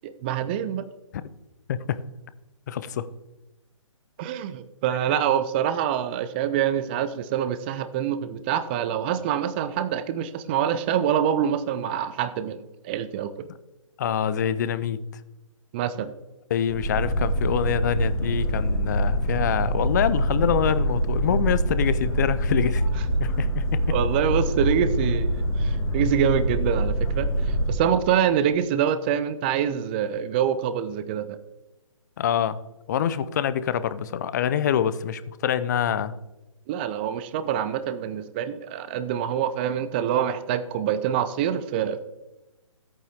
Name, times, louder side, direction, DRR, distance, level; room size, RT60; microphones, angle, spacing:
voice 1, 0.0-0.8 4.2-13.3 15.7-16.1 23.9-31.4 36.7-42.0, right 9 dB, 20° right, 12 dB, 0.4 m, -25 dB
voice 2, 2.7-3.1 5.1-5.2 14.0-15.0 16.5-22.8 23.2-23.9 32.2-32.6 32.9-36.2, left 9 dB, 35° left, 15 dB, 0.5 m, -25 dB
Boat Water vehicle, 16.7-27.7, right 1 dB, 15° left, 1.8 m, -25 dB
13.5 x 8.8 x 3.5 m, 1.0 s
figure-of-eight pair, 140°, 17 cm